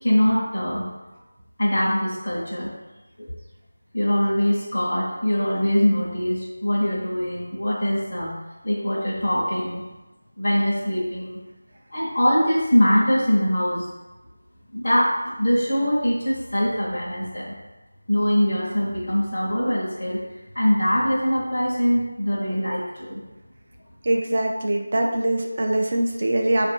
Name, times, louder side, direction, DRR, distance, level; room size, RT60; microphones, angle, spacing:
voice 1, 0.0-0.9 1.6-2.7 3.2-3.3 3.9-8.3 8.6-9.8 10.4-11.4 11.9-13.9 14.7-17.5 18.1-20.2 20.5-23.2, equal, 40° left, -8 dB, 1.0 m, -22 dB
voice 2, 24.0-26.7, right 1 dB, 35° right, 1 dB, 0.5 m, -23 dB
4.5 x 2.6 x 4.4 m, 1.1 s
figure-of-eight pair, 175°, 0 cm